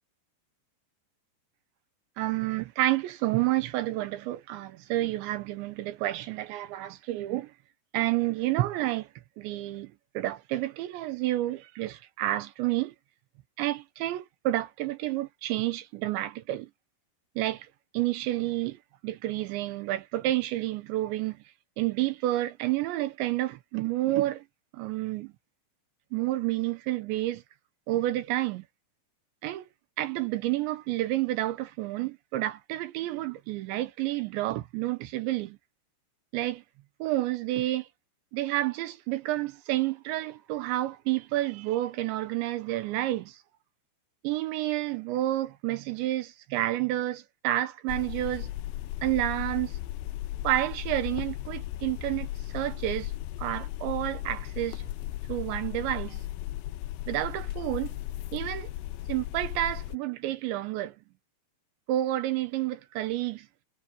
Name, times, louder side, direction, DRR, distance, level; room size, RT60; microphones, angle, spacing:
voice 1, 2.2-7.5 7.9-9.1 9.4-12.9 13.6-16.7 17.4-17.7 17.9-21.4 21.8-24.4 24.7-25.3 26.1-27.4 27.9-28.6 29.4-29.7 30.0-35.6 36.3-36.6 37.0-37.9 38.3-43.4 44.2-48.5 49.0-49.8 50.4-53.1 53.4-54.9 55.3-56.2 57.1-58.0 58.3-58.7 59.1-61.0 61.9-63.5, right 15 dB, 80° right, 3.3 m, -30 dB
sound 1, 47.9-60.0, left 14 dB, 85° left, 2.9 m, -36 dB
omnidirectional pair, 5.2 m